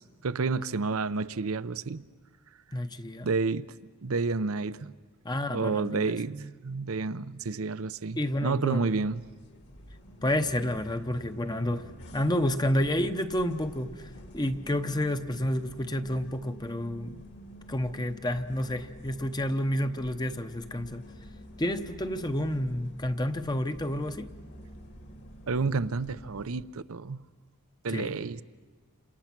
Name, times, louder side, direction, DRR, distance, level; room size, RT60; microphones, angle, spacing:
voice 1, 0.0-2.0 3.2-3.7 4.0-4.9 5.5-9.2 25.5-27.2 27.8-28.4, right 4 dB, 70° right, 0.7 m, -30 dB
voice 2, 2.7-3.3 5.2-6.1 8.2-8.9 10.2-17.2 17.7-21.1 21.6-24.3 27.9-28.2, left 1 dB, 20° left, 0.8 m, -30 dB
sound 1, 8.9-26.6, equal, 50° left, 2.0 m, -48 dB
29.5 x 27.0 x 6.0 m
head